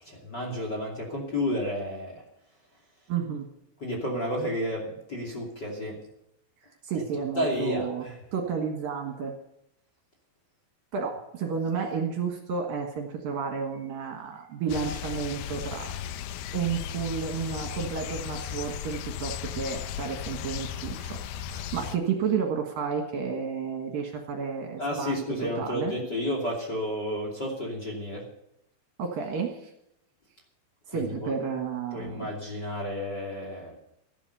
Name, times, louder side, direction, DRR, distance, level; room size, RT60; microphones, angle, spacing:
voice 1, 0.0-2.2 3.8-5.9 7.4-8.1 24.8-28.2 30.9-31.3 31.9-33.7, left 1 dB, 30° left, 0 dB, 2.7 m, -31 dB
voice 2, 3.1-3.5 6.8-8.1 8.3-9.4 10.9-15.9 16.5-25.1 25.6-25.9 29.0-29.7 30.9-32.3, right 6 dB, 60° right, 2 dB, 2.9 m, -31 dB
sound 1, 14.7-22.0, left 9 dB, 80° left, 2.3 m, -36 dB
14.5 x 11.0 x 6.8 m, 0.81 s
omnidirectional pair, 5.0 m